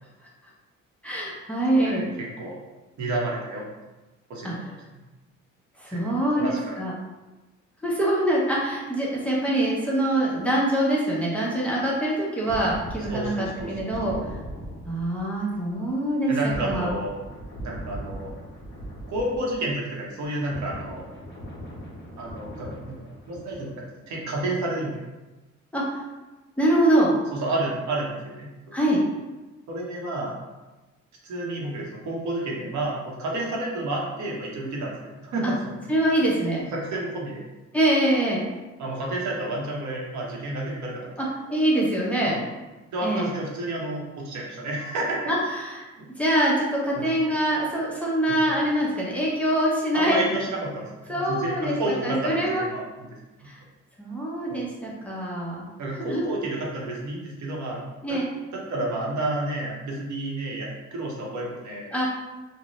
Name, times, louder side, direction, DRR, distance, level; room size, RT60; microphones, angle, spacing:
voice 1, 1.0-2.0 4.4-4.5 5.8-6.9 7.8-14.1 14.8-16.4 16.6-16.9 25.7-26.0 26.6-27.1 28.7-29.0 35.4-35.5 35.9-36.6 37.7-38.4 41.5-42.4 43.0-43.3 45.3-45.8 46.2-50.2 51.1-52.6 53.4-53.6 54.0-55.6 56.0-56.2 58.0-58.3 61.9-62.1, right 1 dB, 5° left, -5 dB, 0.7 m, -24 dB
voice 2, 1.7-2.1 2.4-2.6 3.0-3.7 4.3-4.7 5.9-6.0 6.3-6.8 13.1-14.3 16.3-17.1 17.6-18.3 19.1-21.0 22.2-23.7 24.1-25.0 27.3-28.7 29.7-30.4 31.2-35.7 36.7-37.4 38.8-41.1 42.2-42.4 42.9-45.2 46.0-46.1 46.9-47.0 48.3-48.4 49.9-53.1 54.5-54.6 55.8-57.8 58.1-58.2 58.5-61.9, right 2 dB, 70° right, -3 dB, 0.8 m, -30 dB
sound 1, 12.4-19.9 20.2-23.9 24.2-24.4, equal, 35° left, 0.9 m, -39 dB
2.6 x 2.1 x 3.0 m, 1.1 s
cardioid pair, 90°, 30 cm